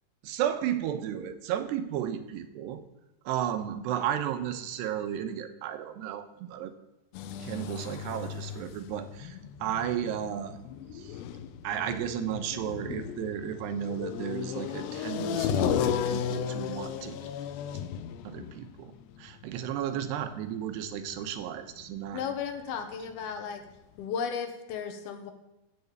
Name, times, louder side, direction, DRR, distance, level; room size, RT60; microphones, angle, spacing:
voice 1, 0.2-2.8 3.2-6.7 7.4-10.6 10.9-11.2 11.6-17.3 18.2-18.9 19.2-22.2, right 10 dB, 85° right, 8 dB, 3.2 m, -33 dB
sound 1, 7.1-22.8 23.1-23.2 23.7-23.8 24.0-24.1, left 8 dB, 85° left, 3.0 m, -35 dB
voice 2, 22.1-23.6 24.0-25.3, left 7 dB, 70° left, 6 dB, 3.1 m, -34 dB
15.0 x 7.0 x 8.4 m, 0.95 s
omnidirectional pair, 4.8 m